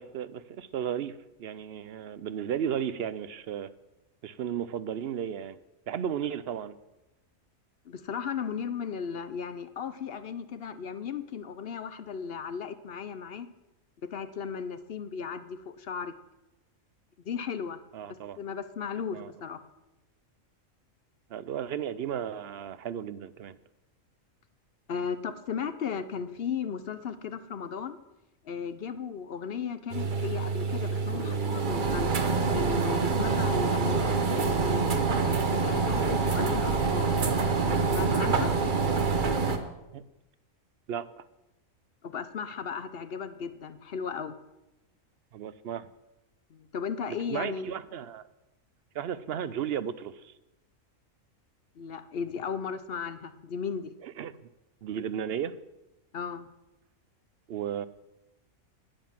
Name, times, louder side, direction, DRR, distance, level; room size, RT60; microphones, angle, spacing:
voice 1, 0.0-3.7 4.2-5.6 5.9-6.7 17.9-18.4 19.1-19.3 21.3-23.6 39.9-40.0 40.9-41.2 45.3-45.9 47.3-48.3 48.9-50.3 54.0-54.3 54.8-55.5 57.5-57.9, right 9 dB, 60° right, 15 dB, 0.7 m, -34 dB
voice 2, 7.8-13.5 14.1-16.1 17.2-17.8 18.4-19.6 24.9-28.0 28.4-32.3 32.5-34.9 35.6-37.1 37.6-38.6 42.0-44.3 46.5-47.7 51.8-53.9 56.1-56.5, left 6 dB, 55° left, 12 dB, 0.8 m, -35 dB
sound 1, 29.9-39.6, right 4 dB, 40° right, 1.1 m, -26 dB
10.0 x 9.4 x 7.3 m, 0.97 s
omnidirectional pair, 1.4 m